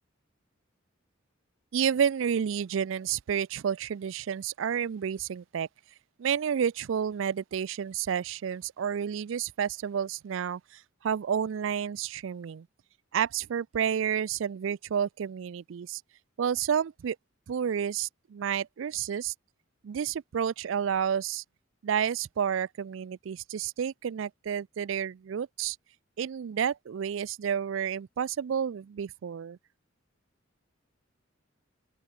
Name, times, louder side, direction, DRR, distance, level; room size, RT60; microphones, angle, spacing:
voice 1, 1.7-5.7 6.2-12.7 13.1-16.0 16.4-17.2 17.5-19.3 19.8-21.4 21.8-25.8 26.2-29.6, right 8 dB, 70° right, 0.4 m, -30 dB
open air
head